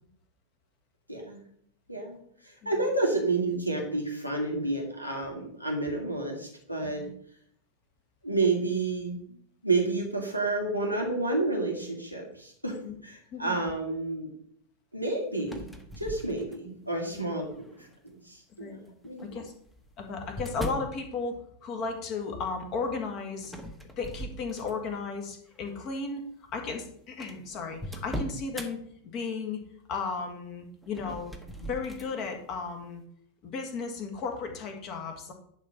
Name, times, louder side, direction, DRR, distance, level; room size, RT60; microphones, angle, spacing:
voice 1, 1.1-1.4 1.9-7.1 8.2-9.2 9.6-14.3 14.9-15.6 16.0-17.5 18.2-19.3, right 2 dB, 90° left, 0 dB, 2.3 m, -30 dB
sound 1, 15.4-16.9 17.5-18.0 19.0-21.0 23.4-25.0 25.5-25.7 26.5-26.6 26.8-26.9 27.2-28.7 30.8-32.1, equal, 5° left, 1.1 m, -39 dB
voice 2, 20.0-23.5 24.0-26.2 26.5-28.9 29.1-29.6 29.9-31.3 31.7-33.0 33.4-35.3, left 4 dB, 35° left, 4 dB, 1.8 m, -35 dB
10.5 x 3.8 x 5.6 m, 0.66 s
figure-of-eight pair, 90°, 0 cm